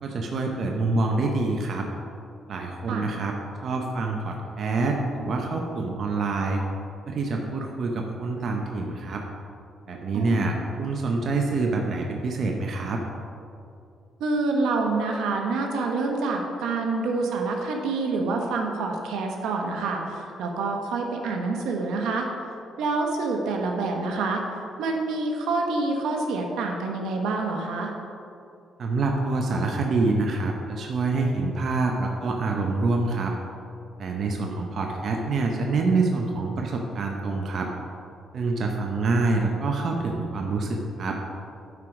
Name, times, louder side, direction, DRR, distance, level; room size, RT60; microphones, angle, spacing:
voice 1, 0.0-1.9 2.5-3.4 3.6-6.6 7.1-9.2 9.9-13.0 28.8-33.3 34.0-37.7 38.3-41.2, right 3 dB, 55° right, 1 dB, 0.8 m, -26 dB
voice 2, 10.1-10.5 14.2-22.3 22.8-24.4 24.8-27.9, right 3 dB, 85° right, 2 dB, 1.1 m, -27 dB
9.4 x 4.6 x 5.2 m, 2.5 s
cardioid pair, 90°, 0 cm